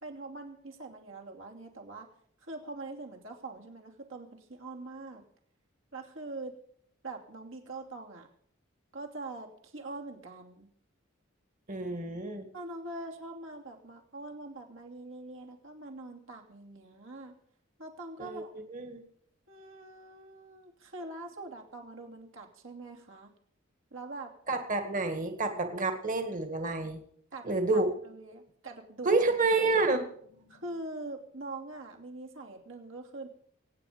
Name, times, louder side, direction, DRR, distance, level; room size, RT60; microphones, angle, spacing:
voice 1, 0.0-2.1 2.4-5.2 5.9-6.6 7.0-8.3 8.9-10.7 12.5-17.4 17.8-18.5 19.5-23.3 23.9-24.3 27.3-29.3 30.5-33.3, right 2 dB, 70° right, 1 dB, 2.9 m, -43 dB
voice 2, 11.7-12.5 18.2-18.4 18.7-19.0 24.5-27.0 27.4-27.9 29.0-30.6, right 3 dB, 40° right, 7 dB, 2.0 m, -29 dB
24.0 x 9.6 x 5.2 m, 0.64 s
head